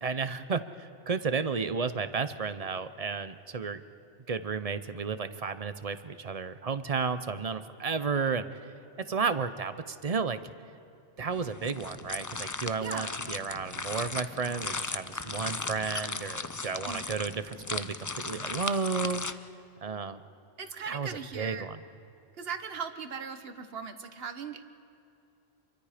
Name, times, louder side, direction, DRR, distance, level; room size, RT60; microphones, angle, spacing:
voice 1, 0.0-3.8 4.3-8.4 9.0-10.4 11.2-19.3 19.8-20.2 20.9-21.8, right 5 dB, 40° right, 12 dB, 0.8 m, -32 dB
sound 1, 11.3-19.3, left 3 dB, 25° left, 0.4 m, -37 dB
voice 2, 12.8-13.1 16.9-17.1 20.6-21.7 22.4-24.6, right 6 dB, 65° right, 9 dB, 1.3 m, -38 dB
27.5 x 23.5 x 5.1 m, 2.8 s
omnidirectional pair, 1.1 m